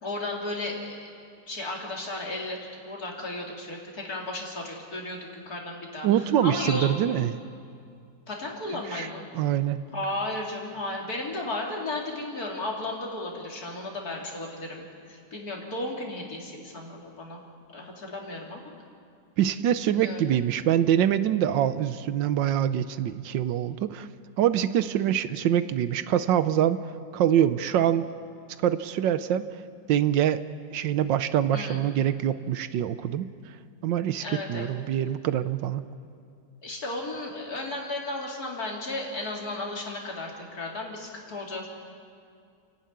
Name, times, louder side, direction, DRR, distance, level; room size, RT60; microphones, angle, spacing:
voice 1, 0.0-1.1 1.5-2.6 2.9-6.9 8.3-9.2 9.9-17.4 17.7-18.6 19.8-20.2 31.5-31.8 34.2-34.7 36.6-41.7, left 2 dB, 55° left, -1 dB, 3.4 m, -34 dB
voice 2, 6.0-7.3 8.9-9.1 9.3-9.8 19.4-24.1 24.4-26.8 27.1-28.1 28.6-29.4 29.9-30.4 30.7-33.3 33.8-34.2 34.5-35.8, right 10 dB, 80° right, 13 dB, 1.4 m, -24 dB
29.0 x 11.5 x 9.4 m, 2.3 s
omnidirectional pair, 2.0 m